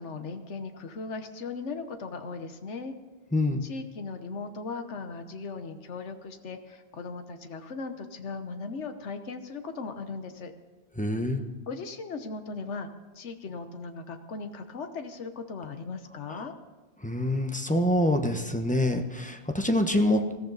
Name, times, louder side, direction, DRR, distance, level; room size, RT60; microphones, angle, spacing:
voice 1, 0.0-2.9 3.6-10.5 11.7-12.9 13.1-16.5, left 4 dB, 80° left, 7 dB, 1.4 m, -38 dB
voice 2, 3.3-3.6 11.0-11.4 16.3-16.4 17.0-20.3, left 1 dB, 5° left, 5 dB, 1.0 m, -26 dB
20.5 x 14.5 x 4.0 m, 1.2 s
omnidirectional pair, 1.2 m